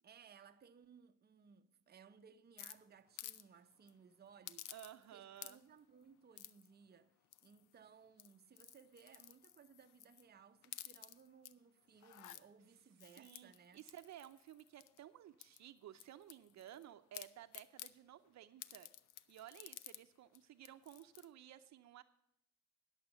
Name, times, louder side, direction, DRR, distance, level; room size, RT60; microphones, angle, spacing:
voice 1, 0.0-4.7 5.1-13.8, right 6 dB, 35° right, 0.7 m, -62 dB
sound 1, 2.6-3.4 3.7-3.9 4.5-5.1 5.4-5.8 6.4-6.7 7.3-7.7 8.1-10.2 10.6-11.5 12.0-12.4 13.0-15.0 15.4-16.8 17.1-17.9 18.6-20.0 20.3-20.4 20.6-21.3, left 13 dB, 90° left, 0.6 m, -53 dB
voice 2, 4.7-5.6 13.2-18.9 19.3-22.0, right 11 dB, 65° right, 0.7 m, -55 dB
11.0 x 7.2 x 7.0 m
cardioid pair, 90°, 30 cm